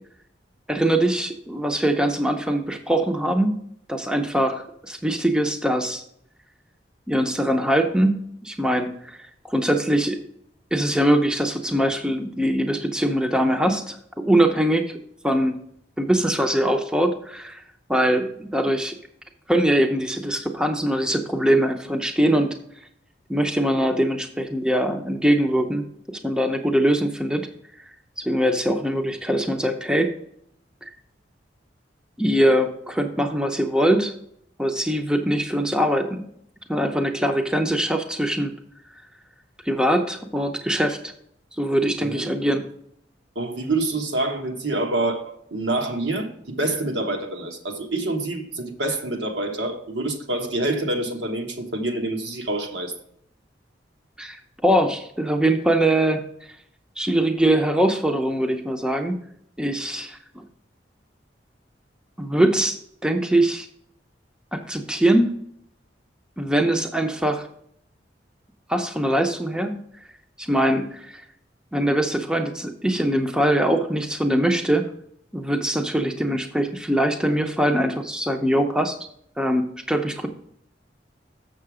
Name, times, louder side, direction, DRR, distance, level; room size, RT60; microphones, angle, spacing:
voice 1, 0.7-3.6 3.9-6.0 7.1-10.2 10.7-14.9 15.2-15.6 16.0-17.6 17.9-19.0 19.5-22.6 23.3-25.8 26.2-27.5 27.8-30.1 30.8-30.9 32.2-34.1 34.6-36.2 36.7-38.5 39.7-41.1 41.6-42.6 54.2-54.4 54.6-56.2 57.0-59.2 59.6-60.4 62.2-63.7 64.5-65.3 66.4-67.5 68.7-69.8 70.4-71.2 71.7-74.9 75.3-79.0 79.4-80.3, right 1 dB, 5° right, 0.6 m, -22 dB
voice 2, 42.0-42.3 43.3-52.9, right 2 dB, 75° right, 1.3 m, -27 dB
7.0 x 6.7 x 4.8 m
head